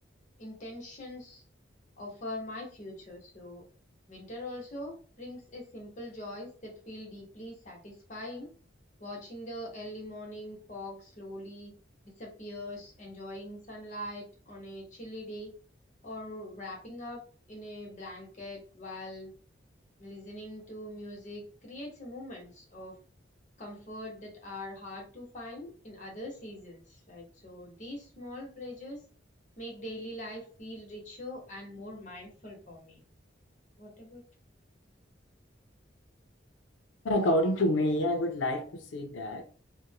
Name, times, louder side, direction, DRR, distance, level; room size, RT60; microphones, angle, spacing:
voice 1, 0.4-1.4 2.0-3.6 4.1-8.5 9.0-11.7 12.2-15.5 16.0-17.2 17.5-19.3 20.0-23.0 23.6-29.0 29.6-33.0 33.8-34.2, left 1 dB, 40° left, 1.0 m, -42 dB
voice 2, 37.0-39.4, left 1 dB, 90° left, 0.5 m, -27 dB
2.5 x 2.1 x 2.8 m
head